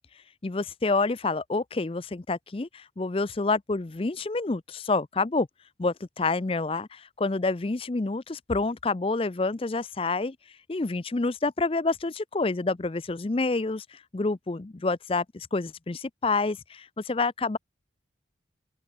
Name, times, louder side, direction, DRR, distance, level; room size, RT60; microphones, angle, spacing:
voice 1, 0.4-5.5 5.8-10.4 10.7-17.6, left 3 dB, 30° left, 0.5 m, -28 dB
open air
head